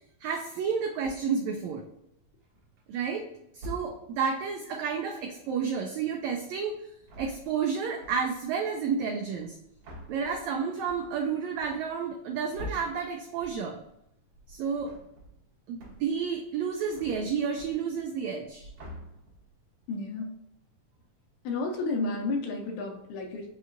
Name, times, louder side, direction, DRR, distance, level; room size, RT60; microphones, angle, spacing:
voice 1, 0.2-1.8 2.9-3.2 3.5-6.8 7.2-9.6 10.1-13.8 14.5-14.9 15.7-18.7, right 6 dB, 85° right, 3 dB, 1.6 m, -31 dB
sound 1, 1.0-1.5 2.3-2.8 3.5-4.3 6.9-7.7 8.0-8.5 9.4-13.9 14.3-15.5 15.8-16.3 16.5-18.2 18.4-19.6, equal, 55° right, 1.9 m, -46 dB
voice 2, 19.9-20.3 21.5-23.5, left 3 dB, 75° left, 0 dB, 2.0 m, -31 dB
5.4 x 2.9 x 2.4 m, 0.79 s
omnidirectional pair, 3.7 m